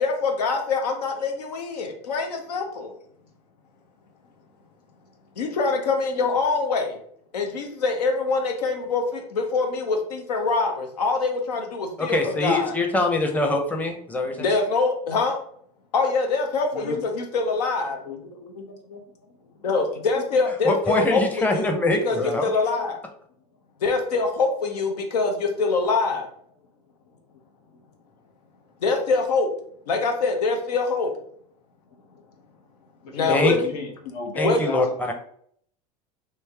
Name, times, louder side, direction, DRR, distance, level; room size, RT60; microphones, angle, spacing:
voice 1, 0.0-2.9 5.4-7.0 7.3-12.8 14.3-15.4 15.9-18.6 18.9-19.0 19.6-21.7 22.0-23.0 23.8-26.3 28.8-29.5 29.9-31.1 33.1-33.7 34.4-34.6, left 4 dB, 90° left, 4 dB, 0.7 m, -24 dB
voice 2, 12.0-14.5 20.6-22.4 33.3-33.5 34.4-35.1, left 2 dB, 10° left, 3 dB, 0.6 m, -24 dB
voice 3, 33.0-34.8, left 2 dB, 70° left, 1 dB, 1.2 m, -30 dB
3.2 x 2.8 x 3.4 m, 0.64 s
hypercardioid pair, 95°, 20 cm